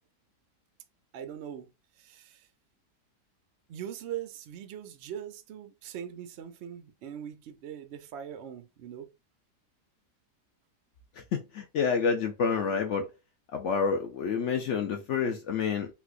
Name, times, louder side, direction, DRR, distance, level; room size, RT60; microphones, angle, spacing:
voice 1, 1.1-1.7 2.0-2.5 3.7-9.1, right 9 dB, 70° right, 0.6 m, -41 dB
voice 2, 11.3-13.1 13.5-15.9, left 6 dB, 70° left, 0.6 m, -28 dB
4.1 x 2.4 x 2.4 m
omnidirectional pair, 1.8 m